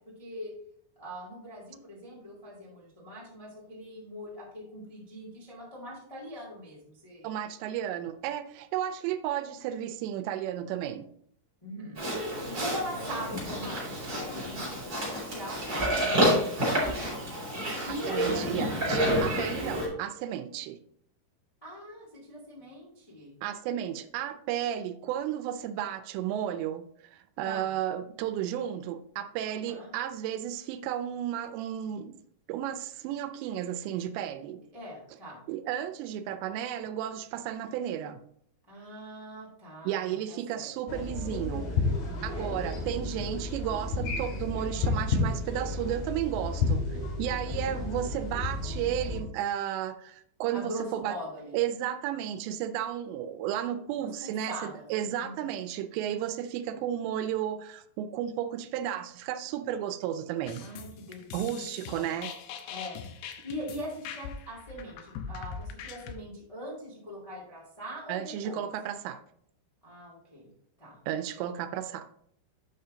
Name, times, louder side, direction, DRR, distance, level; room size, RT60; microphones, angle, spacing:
voice 1, 0.2-0.5 0.9-7.3 11.6-12.0 12.2-17.4 17.8-18.7 21.6-23.3 27.4-27.7 29.4-29.9 34.7-35.4 38.7-40.7 42.3-42.5 47.5-47.9 50.5-51.5 54.0-54.8 55.2-55.3 60.6-62.1 62.7-68.7 69.8-70.5 70.8-71.0, equal, 25° left, -5 dB, 0.7 m, -42 dB
voice 2, 7.2-11.1 18.1-20.8 23.4-32.2 32.5-34.6 35.5-38.2 39.8-41.7 42.2-46.9 47.2-51.2 51.5-60.7 61.3-62.3 68.1-69.2 71.1-72.1, right 10 dB, 90° right, 10 dB, 2.9 m, -33 dB
Livestock farm animals working animals, 11.9-19.9, equal, 20° right, 2.9 m, -29 dB
sound 1, 40.9-49.2, left 3 dB, 60° left, 3.4 m, -31 dB
sound 2, 60.5-66.2, left 7 dB, 80° left, 2.3 m, -42 dB
8.7 x 5.6 x 3.8 m, 0.69 s
omnidirectional pair, 5.0 m